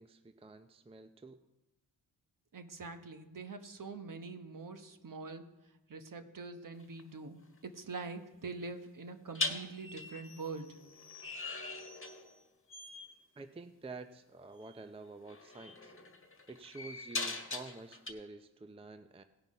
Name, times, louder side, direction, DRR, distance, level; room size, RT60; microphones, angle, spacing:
voice 1, 0.0-1.4 13.4-15.9 16.5-19.2, right 3 dB, 15° right, 9 dB, 0.6 m, -49 dB
voice 2, 2.5-5.5 5.9-10.7, right 3 dB, 45° right, 8 dB, 1.2 m, -44 dB
sound 1, 6.8-7.0 9.4-12.4 12.7-13.1 14.6-14.8 15.3-18.1, left 3 dB, 30° left, 1.6 m, -41 dB
17.0 x 5.7 x 5.5 m, 1.0 s
cardioid pair, 60°, 44 cm